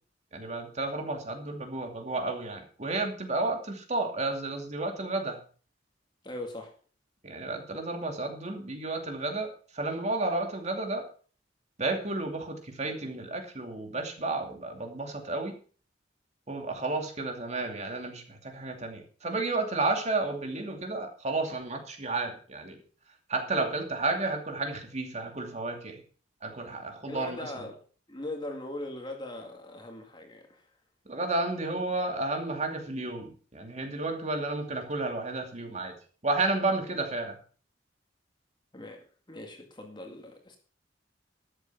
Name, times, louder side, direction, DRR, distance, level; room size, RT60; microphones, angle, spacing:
voice 1, 0.3-5.4 7.2-11.1 11.8-15.5 16.5-22.8 23.3-26.0 26.4-27.5 31.1-36.0 36.2-37.4, right 2 dB, 40° right, 4 dB, 2.6 m, -32 dB
voice 2, 6.2-6.7 27.1-27.8 28.1-30.7 38.7-40.6, left 1 dB, 25° left, 3 dB, 2.1 m, -40 dB
13.0 x 8.1 x 5.9 m, 0.41 s
head